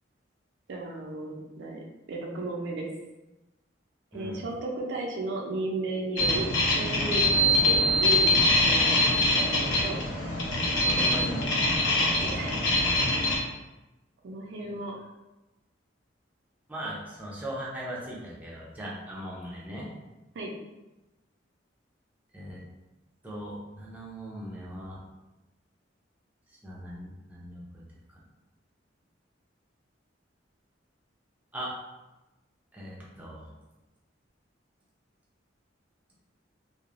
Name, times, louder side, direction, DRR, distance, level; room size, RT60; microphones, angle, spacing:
voice 1, 0.7-2.9 4.1-9.9 12.2-12.6 14.2-14.9 20.3-20.5, right 2 dB, 65° right, 0 dB, 0.4 m, -35 dB
voice 2, 4.1-4.4 10.8-11.6 14.6-14.7 16.7-19.9 22.3-22.6 23.2-25.0 26.6-27.8 31.5-31.7 32.7-33.5, right 1 dB, 10° right, -6 dB, 0.5 m, -39 dB
sound 1, 6.2-13.4, left 1 dB, 75° left, 0.6 m, -24 dB
3.0 x 2.0 x 2.4 m, 1.0 s
head